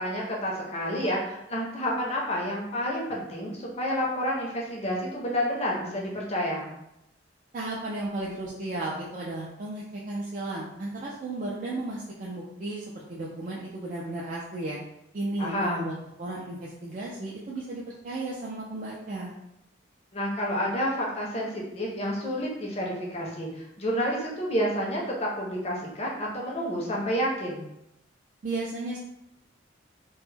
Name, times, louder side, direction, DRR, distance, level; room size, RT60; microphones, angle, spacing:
voice 1, 0.0-6.7 15.4-15.9 20.1-27.7, equal, 35° left, -2 dB, 0.5 m, -29 dB
voice 2, 7.5-14.8 15.1-19.3 28.4-29.0, right 2 dB, 40° right, -5 dB, 0.3 m, -34 dB
2.2 x 2.1 x 3.1 m, 0.83 s
head